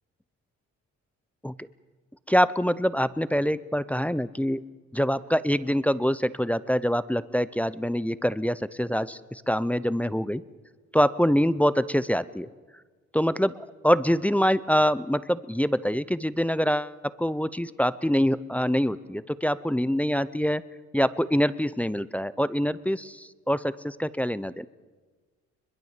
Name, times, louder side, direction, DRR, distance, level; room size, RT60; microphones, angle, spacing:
voice 1, 2.3-4.6 4.9-10.4 10.9-12.5 13.1-20.6 20.9-24.7, equal, 5° left, 15 dB, 0.6 m, -25 dB
22.5 x 22.0 x 7.4 m, 1.4 s
cardioid pair, 90°, 30 cm